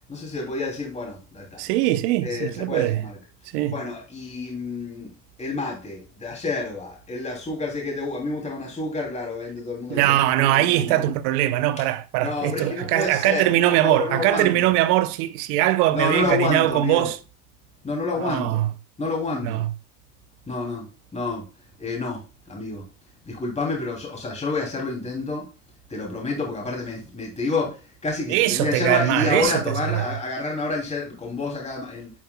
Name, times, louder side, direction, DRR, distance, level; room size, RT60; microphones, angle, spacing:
voice 1, 0.1-1.6 2.2-3.2 3.7-5.1 5.4-11.1 12.2-14.7 15.9-17.1 17.8-18.6 19.0-19.6 20.5-20.9 21.1-21.4 21.8-22.2 22.5-22.9 23.2-25.5 25.9-32.1, left 3 dB, 15° left, 2.8 m, -29 dB
voice 2, 1.6-3.0 3.5-3.7 9.9-17.2 18.2-18.7 19.4-19.7 28.3-30.1, right 14 dB, 70° right, 0.9 m, -21 dB
9.6 x 5.6 x 2.2 m
supercardioid pair, 150°, 48 cm